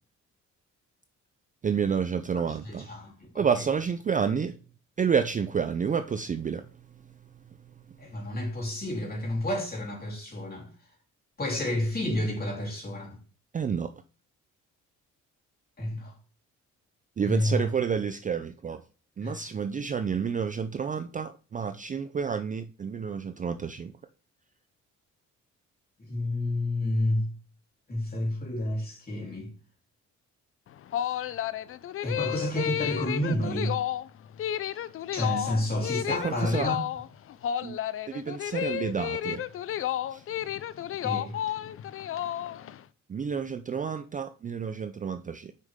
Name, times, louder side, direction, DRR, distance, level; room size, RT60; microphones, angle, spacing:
voice 1, 1.6-2.9 3.3-4.6 5.0-6.7 13.5-13.9 17.2-18.8 19.2-23.9 36.1-36.7 37.6-37.8 38.1-39.4 40.1-40.2 43.1-45.5, right 6 dB, 25° right, 0.4 m, -29 dB
voice 2, 2.3-3.3 8.0-10.7 11.4-13.2 15.8-16.1 17.2-17.7 19.2-19.5 26.1-27.3 27.9-29.5 32.0-33.8 35.1-36.7 41.0-41.4, left 1 dB, 30° left, 3.2 m, -30 dB
sound 1, 30.7-42.8, left 11 dB, 45° left, 0.4 m, -32 dB
6.5 x 5.3 x 3.6 m
cardioid pair, 90°, 30 cm